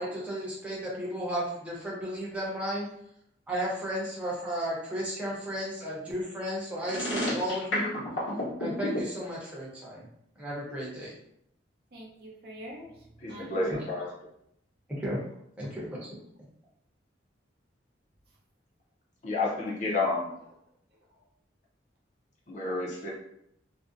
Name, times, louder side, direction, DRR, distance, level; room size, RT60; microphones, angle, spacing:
voice 1, 0.0-2.9 3.5-7.9 8.6-10.1 10.4-11.1 13.6-13.8 14.9-15.2 15.6-16.1, equal, 5° right, -7 dB, 0.7 m, -34 dB
sound 1, 6.8-9.0, left 1 dB, 85° left, 0.8 m, -30 dB
voice 2, 11.9-13.9 14.2-14.3 21.2-21.3, right 1 dB, 55° right, -2 dB, 0.6 m, -46 dB
voice 3, 13.2-14.1 19.2-20.3 22.5-23.1, left 2 dB, 40° left, -3 dB, 0.5 m, -30 dB
2.5 x 2.0 x 2.5 m, 0.75 s
head